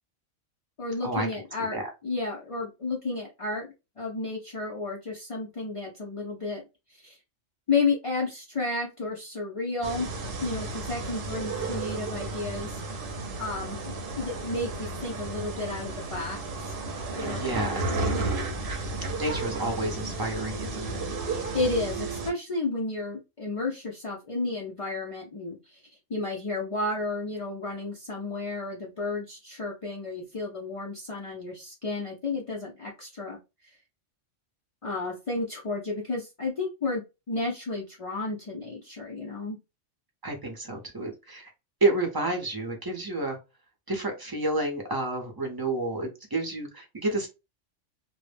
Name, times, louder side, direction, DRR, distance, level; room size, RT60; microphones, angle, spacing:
voice 1, 0.8-6.6 6.9-7.2 7.7-10.1 10.4-12.8 13.4-16.7 17.2-18.2 21.2-25.8 26.1-33.4 33.6-33.7 34.8-39.6, left 3 dB, 55° left, -3 dB, 0.3 m, -32 dB
sound 1, 9.8-22.3, right 3 dB, 60° right, 0.7 m, -33 dB
voice 2, 17.2-17.8 19.2-21.0 40.2-41.5 41.8-43.4 43.9-47.3, right 2 dB, 30° right, 2 dB, 0.4 m, -30 dB
2.1 x 2.0 x 3.2 m, 0.26 s
omnidirectional pair, 1.3 m